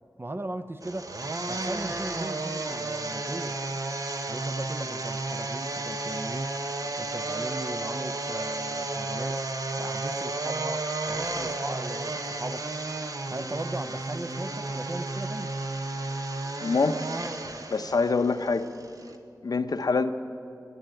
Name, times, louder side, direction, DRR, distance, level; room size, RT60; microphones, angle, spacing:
voice 1, 0.2-1.1 1.5-3.6 4.3-6.6 7.0-9.5 9.8-12.7 13.3-15.6, right 2 dB, 35° right, 11 dB, 0.6 m, -37 dB
sound 1, 0.8-19.2, right 2 dB, 60° right, 1.0 m, -33 dB
voice 2, 16.6-17.1 17.7-18.7 19.4-20.1, left 4 dB, 70° left, 10 dB, 0.6 m, -25 dB
17.5 x 9.2 x 7.8 m, 2.6 s
wide cardioid pair, 70°, 7 cm